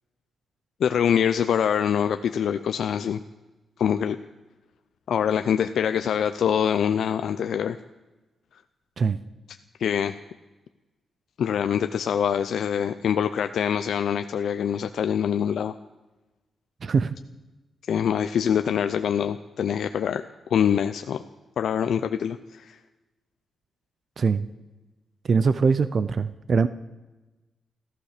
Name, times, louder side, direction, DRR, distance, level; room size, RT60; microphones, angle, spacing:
voice 1, 0.8-3.2 3.8-4.2 5.1-7.8 9.8-10.1 11.4-15.7 17.9-21.2 21.6-22.8, left 8 dB, 75° left, 9 dB, 0.5 m, -24 dB
voice 2, 16.8-17.1 24.2-24.5 25.3-26.7, right 5 dB, 45° right, 14 dB, 0.5 m, -22 dB
14.5 x 14.5 x 6.7 m, 1.1 s
wide cardioid pair, 150°, 0 cm